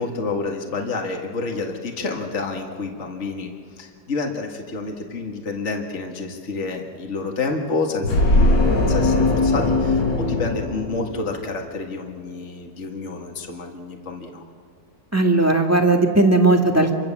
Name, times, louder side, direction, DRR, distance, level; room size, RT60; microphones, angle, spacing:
voice 1, 0.0-8.2 8.9-14.5, left 3 dB, 40° left, 2 dB, 2.2 m, -29 dB
sound 1, 8.0-11.5, left 2 dB, 80° left, 3.3 m, -19 dB
voice 2, 15.1-16.9, right 2 dB, 10° right, 2 dB, 1.9 m, -17 dB
28.0 x 24.0 x 7.3 m, 2.2 s
omnidirectional pair, 1.9 m